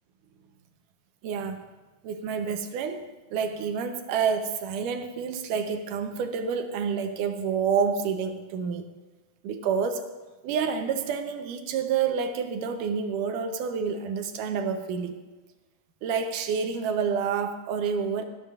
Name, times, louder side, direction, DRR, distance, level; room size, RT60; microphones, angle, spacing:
voice 1, 1.2-1.6 2.0-8.9 9.4-10.1 10.4-15.2 16.0-18.2, right 6 dB, 75° right, 6 dB, 2.4 m, -28 dB
18.5 x 13.5 x 2.5 m, 1.2 s
omnidirectional pair, 3.8 m